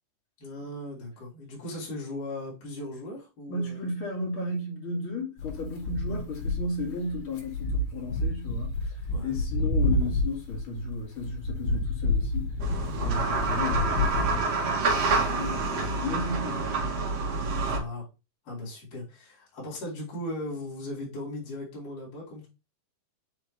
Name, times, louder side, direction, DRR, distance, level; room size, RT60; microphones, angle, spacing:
voice 1, 0.4-3.9 6.1-6.3 9.1-9.4 13.3-13.5 17.7-18.1 18.4-22.5, left 1 dB, 65° left, 5.0 m, -38 dB
voice 2, 3.5-12.6 13.0-16.8, left 2 dB, 40° left, 3.1 m, -34 dB
sound 1, 5.4-14.4, left 2 dB, 80° left, 1.0 m, -29 dB
sound 2, 12.6-17.8, right 3 dB, 55° right, 2.5 m, -28 dB
8.7 x 3.6 x 3.1 m
omnidirectional pair, 4.0 m